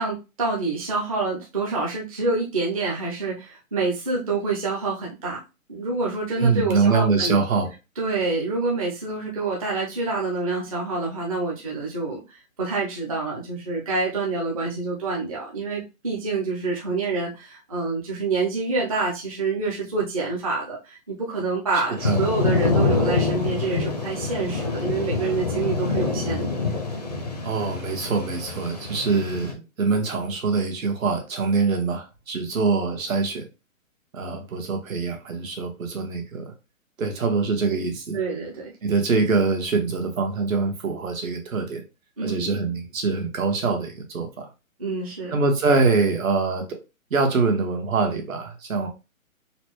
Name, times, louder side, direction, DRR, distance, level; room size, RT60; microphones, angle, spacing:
voice 1, 0.0-5.4 5.7-7.4 8.0-26.5 38.1-38.7 42.2-42.5 44.8-45.4, right 3 dB, 25° right, -3 dB, 0.5 m, -27 dB
voice 2, 6.4-7.7 22.0-22.3 27.4-33.5 34.1-36.5 37.0-38.2 38.8-41.8 42.2-44.5 45.3-46.6 47.1-48.9, right 4 dB, 70° right, 3 dB, 1.3 m, -24 dB
Thunder / Rain, 22.0-29.5, left 3 dB, 30° left, 0.4 m, -26 dB
4.1 x 2.1 x 3.0 m, 0.28 s
hypercardioid pair, 165°, 41 cm